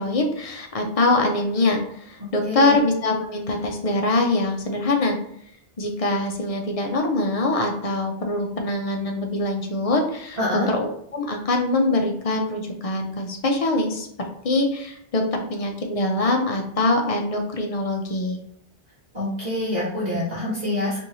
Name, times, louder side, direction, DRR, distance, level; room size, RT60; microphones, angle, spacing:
voice 1, 0.0-5.2 5.8-10.4 10.7-14.1 14.4-15.2 15.5-18.4, left 2 dB, 45° left, 2 dB, 0.6 m, -23 dB
voice 2, 2.4-2.7 10.4-10.7 19.1-21.0, left 1 dB, 45° right, -8 dB, 1.1 m, -26 dB
4.6 x 2.7 x 2.6 m, 0.69 s
omnidirectional pair, 1.1 m